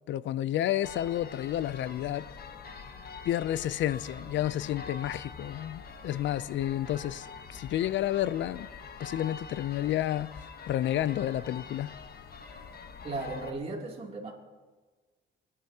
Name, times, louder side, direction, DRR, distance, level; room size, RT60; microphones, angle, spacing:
voice 1, 0.0-2.3 3.2-8.7 9.0-11.9, left 12 dB, 70° left, 0.5 m, -31 dB
sound 1, 0.8-13.5, left 5 dB, 50° left, 1.2 m, -45 dB
voice 2, 13.0-14.3, right 2 dB, 30° right, 2.8 m, -36 dB
27.0 x 9.9 x 2.9 m
cardioid pair, 90°, 20 cm